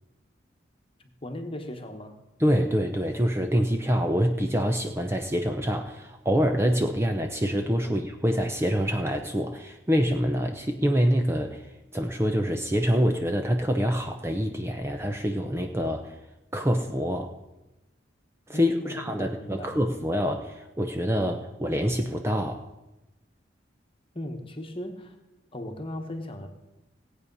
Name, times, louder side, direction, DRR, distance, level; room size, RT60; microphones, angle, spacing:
voice 1, 1.2-2.2 7.9-8.0 18.5-19.8 24.1-25.1 25.5-26.5, left 1 dB, 30° left, 5 dB, 1.3 m, -37 dB
voice 2, 2.4-11.6 11.9-16.1 16.5-17.3 18.5-22.6, equal, 15° right, 4 dB, 0.7 m, -26 dB
17.0 x 8.5 x 5.5 m, 1.0 s
head